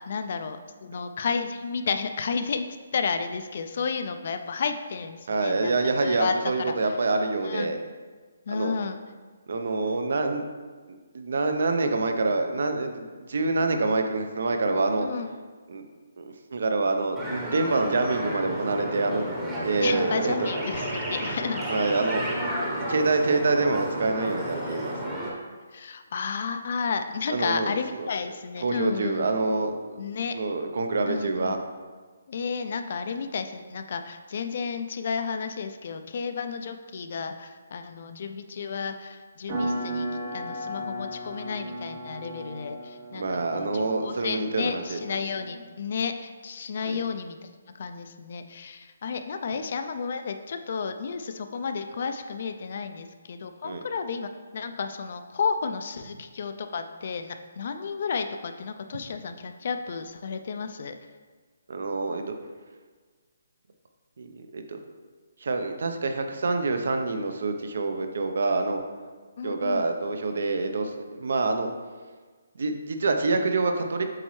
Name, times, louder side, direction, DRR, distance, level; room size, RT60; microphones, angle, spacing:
voice 1, 0.1-2.7 2.9-6.9 7.4-7.7 8.5-9.0 15.0-15.3 19.7-21.6 24.2-24.4 25.7-29.3 30.0-30.4 31.1-31.6 32.3-40.1 40.3-43.7 44.0-47.4 47.8-61.0 69.4-69.9, left 5 dB, 45° left, 8 dB, 0.4 m, -32 dB
voice 2, 5.3-7.8 8.5-8.8 9.5-10.4 10.9-15.1 15.7-15.9 16.2-19.3 19.6-20.5 21.7-22.5 22.9-24.9 27.3-28.1 28.6-30.0 30.3-31.6 43.1-45.0 46.8-47.0 53.6-53.8 61.7-62.2 64.2-64.8 65.4-68.8 69.4-71.7 72.6-74.0, right 3 dB, 60° right, 6 dB, 0.7 m, -26 dB
sound 1, 17.2-25.3, equal, 10° right, 0.9 m, -32 dB
sound 2, 39.5-45.7, equal, 30° right, 1.2 m, -35 dB
7.6 x 4.2 x 3.2 m, 1.4 s
hypercardioid pair, 170°, 0 cm